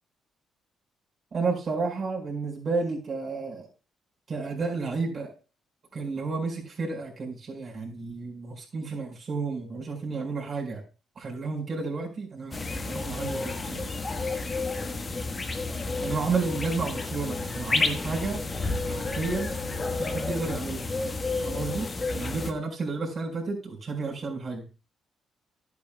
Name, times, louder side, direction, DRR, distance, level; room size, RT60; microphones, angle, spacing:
voice 1, 1.3-3.7 4.3-5.3 5.9-10.8 11.2-13.9 16.0-18.4 18.8-19.5 20.0-20.9 21.4-24.6, right 4 dB, 50° right, -2 dB, 4.6 m, -31 dB
sound 1, 12.5-22.5, left 3 dB, 30° left, 1.3 m, -31 dB
12.5 x 9.5 x 2.2 m, 0.34 s
cardioid pair, 90°, 0 cm